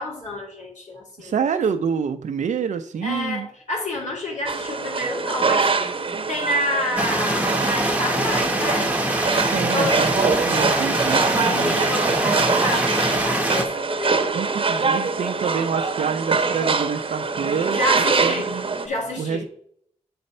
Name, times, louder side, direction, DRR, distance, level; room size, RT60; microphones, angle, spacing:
voice 1, 0.0-1.3 3.0-5.7 6.3-8.9 9.7-10.0 11.4-14.3 17.7-18.5 18.8-19.4, left 1 dB, 75° left, -1 dB, 2.7 m, -28 dB
voice 2, 1.2-3.5 9.5-11.7 14.3-18.7 19.2-19.5, right 6 dB, 80° right, 7 dB, 0.5 m, -27 dB
sound 1, 4.5-18.9, right 4 dB, 45° right, 0.9 m, -24 dB
sound 2, 7.0-13.6, right 1 dB, 10° right, 0.8 m, -24 dB
7.8 x 4.1 x 5.4 m, 0.63 s
wide cardioid pair, 125°, 12 cm